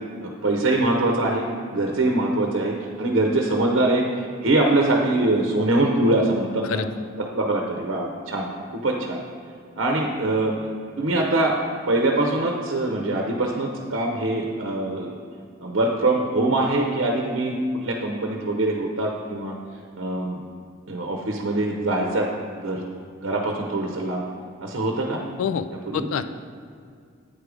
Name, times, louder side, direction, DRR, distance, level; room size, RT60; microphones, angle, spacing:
voice 1, 0.2-6.8 7.2-8.5 8.7-9.2 9.8-10.5 11.0-11.6 11.9-15.2 15.6-19.5 20.0-20.4 20.9-22.3 22.6-22.8 23.2-24.2 24.6-25.2 25.9-26.1, right 2 dB, 70° right, 1 dB, 0.8 m, -23 dB
voice 2, 25.9-26.2, left 7 dB, 85° left, 10 dB, 0.4 m, -25 dB
8.8 x 4.8 x 5.0 m, 2.2 s
head